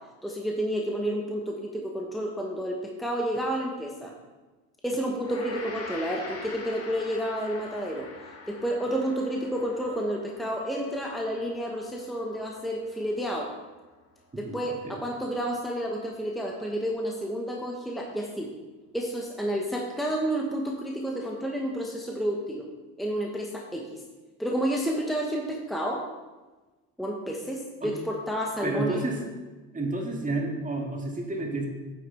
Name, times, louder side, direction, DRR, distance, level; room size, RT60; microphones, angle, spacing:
voice 1, 0.2-4.1 4.8-8.1 8.5-13.5 14.4-18.5 18.9-22.6 23.0-24.0 24.4-26.0 27.0-29.0, equal, ahead, 0 dB, 1.3 m, -30 dB
Gong, 5.2-14.6, left 3 dB, 35° left, 2.2 m, -45 dB
voice 2, 28.6-29.2 29.7-31.7, right 2 dB, 20° right, 0 dB, 2.2 m, -30 dB
9.3 x 7.8 x 3.5 m, 1.2 s
hypercardioid pair, 70°, 40 cm